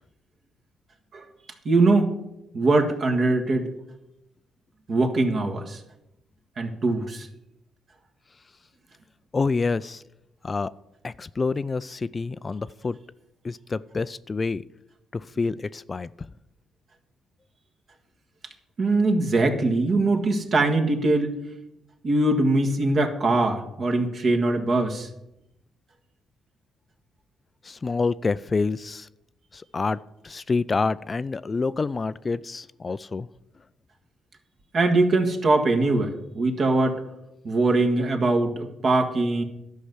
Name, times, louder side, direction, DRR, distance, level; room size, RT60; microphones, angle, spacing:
voice 1, 1.6-2.1 2.5-3.7 4.9-5.8 6.6-7.3 18.8-21.3 22.0-25.1 34.7-37.0 37.4-39.4, right 2 dB, 50° right, 4 dB, 1.7 m, -22 dB
voice 2, 9.3-10.0 10.4-10.7 11.0-13.0 13.4-14.6 15.1-16.3 27.6-29.1 29.5-30.0 30.2-33.3, left 4 dB, 30° left, 16 dB, 0.3 m, -27 dB
11.5 x 5.5 x 7.9 m, 0.88 s
cardioid pair, 90°, 0 cm